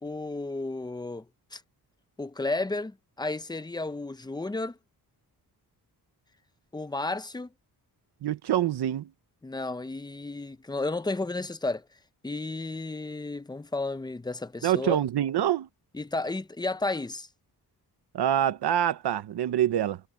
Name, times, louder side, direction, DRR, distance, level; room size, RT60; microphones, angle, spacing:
voice 1, 0.0-1.2 1.5-1.6 2.2-4.8 6.7-7.5 9.4-11.8 12.2-15.0 15.9-17.3, left 2 dB, 10° left, 0.7 m, -32 dB
voice 2, 8.2-9.1 14.6-15.7 18.1-20.0, right 11 dB, 90° right, 0.9 m, -25 dB
wide cardioid pair, 145°, 39 cm